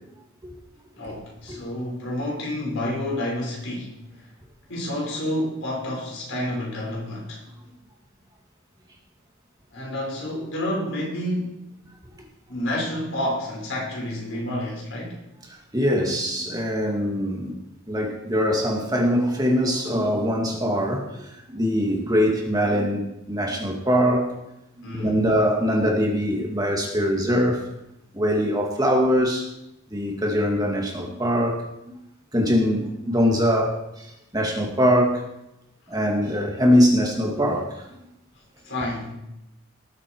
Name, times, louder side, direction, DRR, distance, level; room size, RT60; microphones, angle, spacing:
voice 1, 1.0-4.0 4.7-7.4 9.7-11.6 12.5-15.3 24.8-25.2 38.7-39.1, left 1 dB, 65° left, -3 dB, 5.5 m, -29 dB
voice 2, 15.7-17.5 17.9-24.3 24.8-27.7 28.1-29.5 29.9-32.0 32.3-35.2 35.9-38.0, equal, 20° right, 0 dB, 2.2 m, -22 dB
19.0 x 8.4 x 4.7 m, 0.87 s
head